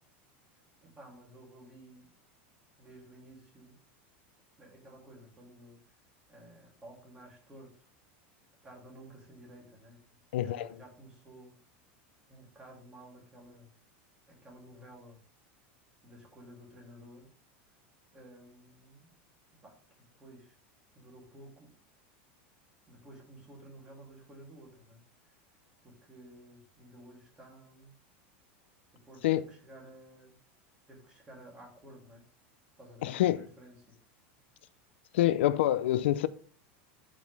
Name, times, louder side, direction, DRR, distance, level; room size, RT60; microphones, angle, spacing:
voice 1, 0.8-2.1 2.8-3.8 4.6-5.8 6.3-7.9 8.6-10.0 10.3-11.5 12.3-13.7 14.3-15.2 16.0-17.3 18.1-19.1 19.6-19.8 20.2-20.6 20.9-21.7 22.9-25.0 25.3-25.4 25.8-28.0 29.0-30.3 30.9-32.2 32.8-33.9, right 1 dB, 15° right, 2.9 m, -53 dB
voice 2, 10.3-10.7 29.2-29.4 33.0-33.5 35.1-36.3, left 13 dB, 85° left, 0.5 m, -26 dB
12.0 x 5.2 x 3.4 m
supercardioid pair, 160°, 6 cm